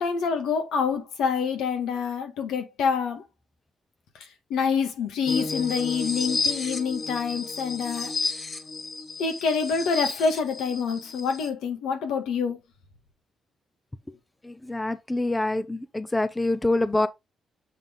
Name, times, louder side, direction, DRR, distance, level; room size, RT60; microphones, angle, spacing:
voice 1, 0.0-3.2 4.2-8.1 9.2-12.6, left 6 dB, 85° left, 1.7 m, -27 dB
sound 1, 5.3-11.5, left 3 dB, 40° left, 1.3 m, -32 dB
voice 2, 14.4-17.1, left 2 dB, 10° left, 0.5 m, -26 dB
7.4 x 3.5 x 3.8 m
cardioid pair, 90°, 0 cm